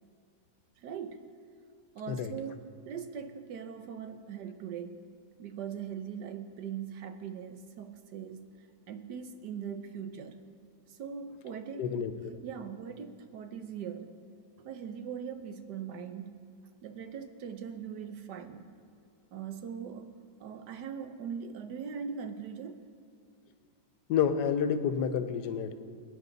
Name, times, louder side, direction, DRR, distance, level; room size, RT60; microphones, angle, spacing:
voice 1, 0.8-1.2 1.9-5.0 5.4-8.5 8.9-10.4 10.9-11.9 12.4-14.2 14.6-16.4 16.8-18.7 19.3-20.1 20.4-22.8, right 7 dB, 80° right, 8 dB, 1.5 m, -41 dB
voice 2, 11.8-12.3 24.1-25.7, left 7 dB, 90° left, 10 dB, 1.4 m, -29 dB
22.0 x 9.6 x 4.0 m, 2.4 s
omnidirectional pair, 1.8 m